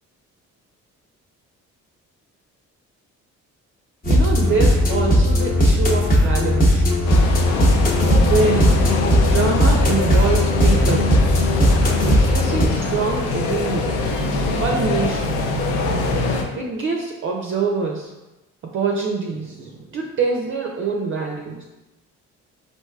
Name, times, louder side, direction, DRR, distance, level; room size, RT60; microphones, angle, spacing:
sound 1, 4.0-12.6, equal, 30° left, 0.8 m, -17 dB
voice 1, 4.1-7.0 8.2-8.8 9.2-11.2 12.0-14.1 14.6-15.5 16.5-18.1 18.7-21.6, right 4 dB, 40° right, 0 dB, 0.4 m, -25 dB
sound 2, 7.1-16.4, left 3 dB, 85° left, 0.5 m, -24 dB
4.4 x 2.5 x 2.3 m, 1.0 s
cardioid pair, 90°, 30 cm